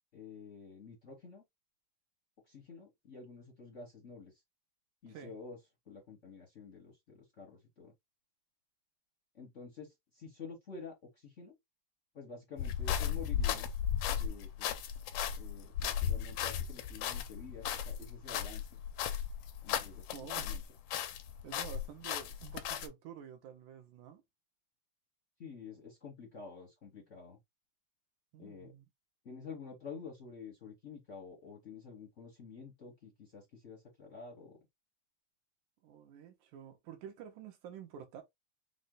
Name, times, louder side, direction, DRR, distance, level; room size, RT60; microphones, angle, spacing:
voice 1, 0.1-1.4 2.5-4.3 5.0-5.6 5.9-7.9 9.3-11.6 12.1-13.8 14.2-14.8 15.4-18.8 19.6-20.1 20.3-20.6 25.4-27.4 28.4-28.7 29.2-34.6, left 5 dB, 65° left, 0.7 m, -49 dB
sound 1, 12.6-20.6 20.9-22.9, left 9 dB, 80° left, 1.4 m, -36 dB
voice 2, 20.1-20.5 21.4-24.2 28.3-28.9 35.8-38.2, right 8 dB, 85° right, 2.6 m, -49 dB
6.0 x 2.2 x 3.8 m
omnidirectional pair, 3.4 m